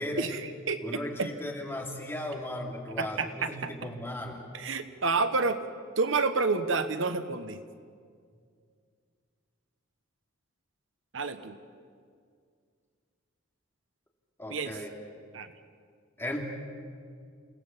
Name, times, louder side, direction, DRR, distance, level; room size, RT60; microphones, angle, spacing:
voice 1, 0.2-1.3 3.0-3.9 4.5-5.6 6.0-7.7 11.1-11.6 14.5-14.8 15.3-15.5, right 4 dB, 65° right, 10 dB, 1.1 m, -29 dB
voice 2, 0.8-4.4 14.4-14.9 16.2-16.4, left 1 dB, 10° left, -1 dB, 2.9 m, -36 dB
29.5 x 17.5 x 7.4 m, 2.1 s
head